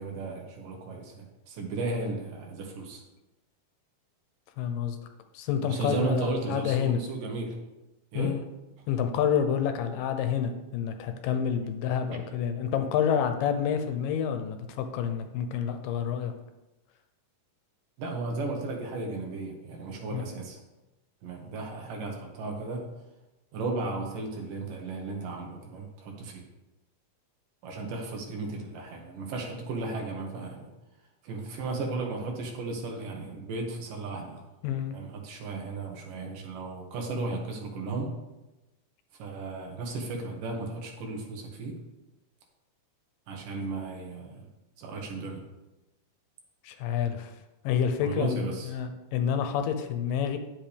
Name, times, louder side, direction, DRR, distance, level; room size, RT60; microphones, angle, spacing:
voice 1, 0.0-3.0 5.6-7.6 8.1-8.4 18.0-20.6 21.2-22.9 23.5-26.4 27.6-30.7 31.2-34.4 34.9-38.2 39.2-41.8 43.3-44.5 44.8-45.4 48.0-48.7, right 3 dB, 80° right, 1 dB, 3.0 m, -35 dB
voice 2, 4.6-5.0 5.3-7.0 8.1-8.4 8.9-16.3 20.1-20.3 34.6-35.0 46.6-47.3 47.6-50.4, left 8 dB, 85° left, 7 dB, 2.4 m, -28 dB
10.5 x 7.6 x 3.5 m, 1.0 s
omnidirectional pair, 3.8 m